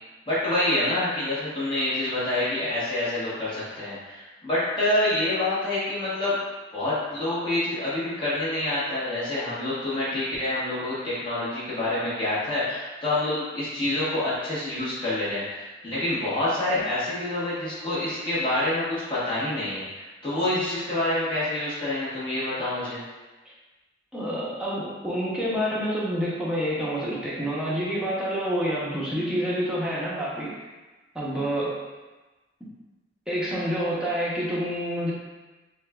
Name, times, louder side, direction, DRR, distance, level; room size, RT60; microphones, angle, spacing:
voice 1, 0.3-6.4 6.7-23.0, left 1 dB, 25° left, -10 dB, 1.1 m, -27 dB
voice 2, 24.1-30.5 31.1-31.7 32.6-32.7 33.3-35.1, equal, 5° right, -7 dB, 0.7 m, -28 dB
6.3 x 2.3 x 2.3 m, 1.2 s
head